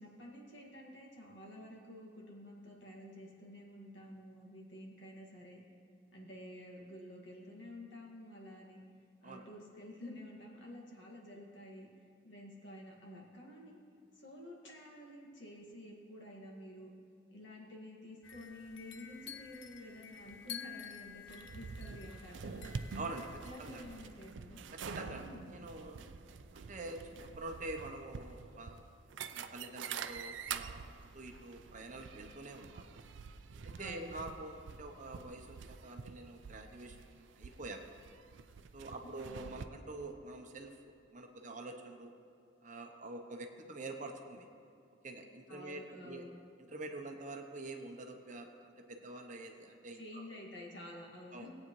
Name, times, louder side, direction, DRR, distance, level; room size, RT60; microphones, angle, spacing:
voice 1, 0.0-5.6 6.1-8.8 9.2-11.9 12.2-13.8 14.1-16.9 17.3-22.7 23.4-24.6 25.1-25.6 33.8-34.1 39.0-39.5 45.5-46.4 49.9-51.5, left 1 dB, 70° left, -3 dB, 1.9 m, -50 dB
sound 1, 18.2-24.0, left 8 dB, 85° left, 0.6 m, -51 dB
sound 2, 21.3-39.7, right 6 dB, 75° right, 0.4 m, -47 dB
voice 2, 22.9-23.9 24.7-26.1 26.5-28.9 29.3-33.0 33.6-37.8 38.7-40.8 41.1-42.1 42.6-44.5 45.0-46.2 46.7-50.3 51.3-51.5, right 2 dB, 40° right, 3 dB, 0.8 m, -46 dB
18.5 x 8.5 x 3.1 m, 2.6 s
head